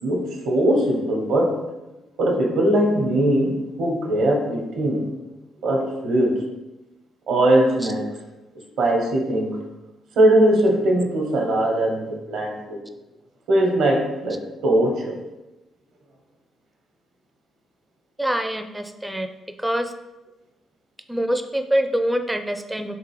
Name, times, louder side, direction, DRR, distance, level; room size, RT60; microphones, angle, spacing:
voice 1, 0.0-1.6 2.2-5.1 5.6-6.5 7.3-8.1 8.8-9.6 10.2-12.8 13.5-15.2, right 1 dB, 80° right, 1 dB, 1.1 m, -20 dB
voice 2, 18.2-19.3 19.6-19.9 21.1-23.0, equal, 5° right, 6 dB, 0.4 m, -24 dB
3.6 x 3.1 x 4.7 m, 1.0 s
cardioid pair, 90°, 0 cm